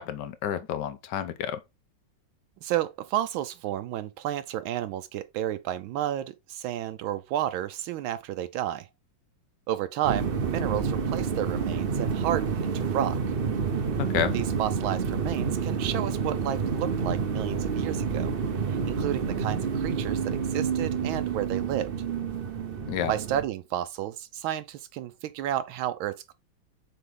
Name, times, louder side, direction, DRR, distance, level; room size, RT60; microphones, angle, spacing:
voice 1, 0.0-1.6 14.0-14.4 22.9-23.1, left 9 dB, 70° left, 1.2 m, -30 dB
voice 2, 2.6-8.9 9.7-13.2 14.3-18.3 18.7-21.9 23.1-26.3, right 12 dB, 80° right, 1.3 m, -31 dB
sound 1, 10.0-23.4, right 6 dB, 55° right, 0.6 m, -29 dB
6.8 x 4.0 x 3.7 m
omnidirectional pair, 2.2 m